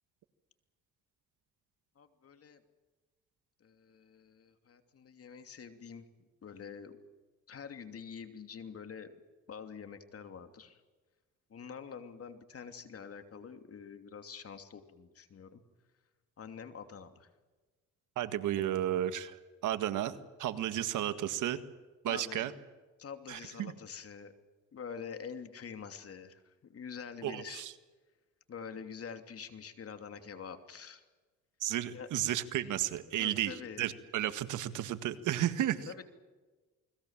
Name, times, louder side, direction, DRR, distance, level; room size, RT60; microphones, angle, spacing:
voice 1, 2.0-2.6 3.6-6.1 6.4-7.0 7.5-9.1 9.5-10.8 11.5-15.6 16.4-17.3 22.1-22.5 23.0-24.3 24.7-27.7 28.5-31.0 31.9-32.1 33.2-33.9 35.9-36.0, left 6 dB, 50° left, 8 dB, 2.9 m, -46 dB
voice 2, 18.2-21.6 22.0-22.5 23.3-23.7 27.2-27.7 31.6-35.9, right 12 dB, 85° right, 11 dB, 1.8 m, -33 dB
29.0 x 21.0 x 7.5 m, 1.3 s
cardioid pair, 90°, 30 cm